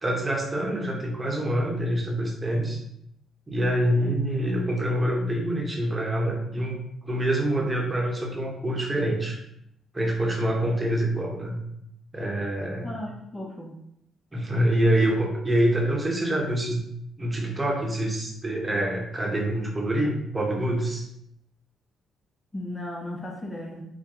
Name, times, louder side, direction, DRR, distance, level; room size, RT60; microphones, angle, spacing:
voice 1, 0.0-2.8 3.5-6.8 7.0-9.4 9.9-11.6 12.1-12.9 14.3-16.8 17.2-21.1, right 1 dB, 20° right, -1 dB, 1.0 m, -26 dB
voice 2, 12.8-13.7 22.5-23.8, left 1 dB, 15° left, -1 dB, 0.7 m, -35 dB
4.2 x 2.2 x 3.8 m, 0.77 s
cardioid pair, 90°, 0 cm